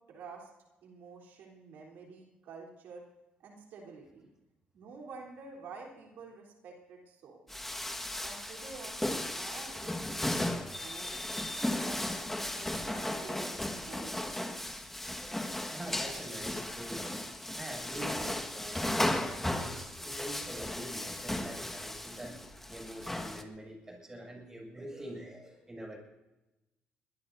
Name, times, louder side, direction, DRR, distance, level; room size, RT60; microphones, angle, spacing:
voice 1, 0.1-0.5 0.8-3.0 3.4-4.3 4.7-7.6 8.2-11.3 11.6-14.4 16.1-16.2, right 4 dB, 80° right, -1 dB, 3.8 m, -49 dB
sound 1, 7.5-23.4, left 1 dB, 10° left, 1.6 m, -36 dB
voice 2, 15.1-17.2 17.5-26.0, right 1 dB, 15° right, 1 dB, 6.8 m, -45 dB
22.0 x 20.5 x 2.7 m, 0.99 s
cardioid pair, 95°, 3 cm